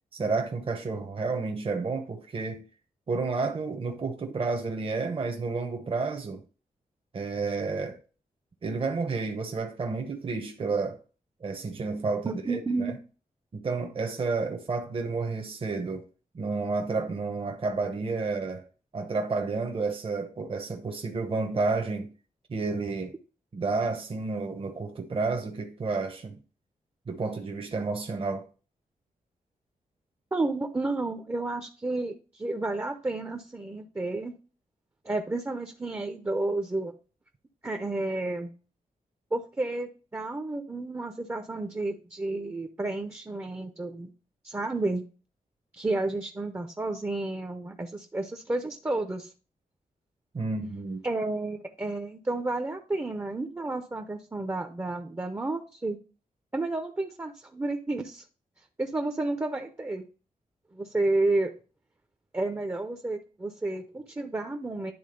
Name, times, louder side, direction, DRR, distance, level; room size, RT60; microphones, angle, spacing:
voice 1, 0.1-2.6 3.1-6.4 7.1-8.0 8.6-11.0 11.4-12.9 13.5-16.0 16.3-18.6 18.9-22.1 22.5-23.1 23.5-26.4 27.1-28.5 50.3-51.0, right 4 dB, 40° right, 0.9 m, -30 dB
voice 2, 12.3-12.9 30.3-34.4 35.0-36.9 37.6-38.5 39.3-44.1 44.4-45.0 45.8-49.3 51.0-56.0 56.5-58.2 58.8-60.0 60.7-61.5 62.3-64.9, right 2 dB, 15° right, 0.7 m, -31 dB
10.5 x 3.7 x 5.1 m
wide cardioid pair, 160°, 14 cm